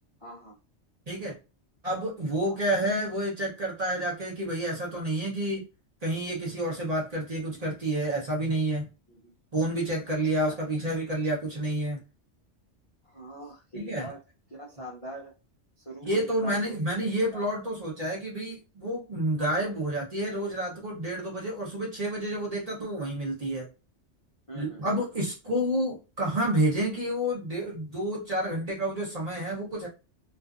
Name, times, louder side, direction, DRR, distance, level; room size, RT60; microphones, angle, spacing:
voice 1, 0.2-0.6 2.4-2.6 9.1-9.3 10.4-10.6 13.0-14.2 14.5-15.3 15.8-16.8 17.3-17.5 24.5-24.9, right 1 dB, 40° left, -5 dB, 0.5 m, -42 dB
voice 2, 1.8-5.6 6.0-8.9 9.5-12.0 13.7-14.1 16.0-23.7 24.5-29.9, right 1 dB, 40° right, -3 dB, 0.7 m, -29 dB
2.5 x 2.4 x 2.3 m, 0.30 s
omnidirectional pair, 1.2 m